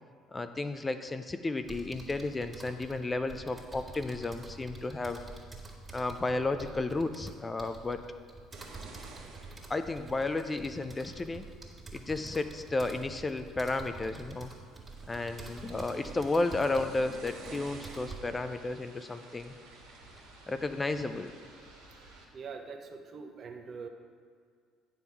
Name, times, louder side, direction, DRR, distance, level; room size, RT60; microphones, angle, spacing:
voice 1, 0.3-5.2 5.9-8.0 9.7-11.4 11.9-14.5 15.1-19.5 20.5-21.3, left 2 dB, 25° left, 9 dB, 0.5 m, -33 dB
sound 1, 1.6-18.2, right 3 dB, 20° right, 1.9 m, -48 dB
sound 2, 8.5-21.5, right 3 dB, 65° right, 1.3 m, -54 dB
newjersey OC musicpierrear monp, 15.1-22.2, right 2 dB, 80° right, 1.5 m, -54 dB
voice 2, 22.3-23.9, right 5 dB, 45° right, 4 dB, 1.0 m, -43 dB
9.3 x 5.1 x 5.9 m, 2.1 s
hypercardioid pair, 55°, 0 cm